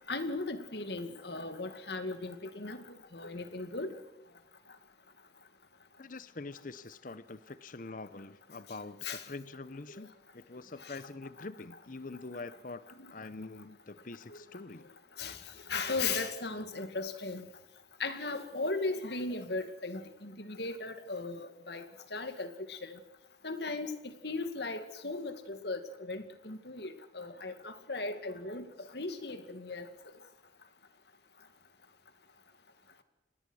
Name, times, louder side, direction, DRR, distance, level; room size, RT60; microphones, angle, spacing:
voice 1, 0.1-2.8 3.1-3.9 9.0-9.2 15.2-15.4 15.7-17.4 18.0-21.8 22.1-22.9 23.4-23.9 24.2-28.6 28.9-29.9, left 3 dB, 65° left, 9 dB, 2.2 m, -37 dB
voice 2, 6.0-12.8 13.1-14.9, left 3 dB, 45° left, 15 dB, 0.8 m, -45 dB
26.0 x 19.5 x 6.4 m, 0.96 s
head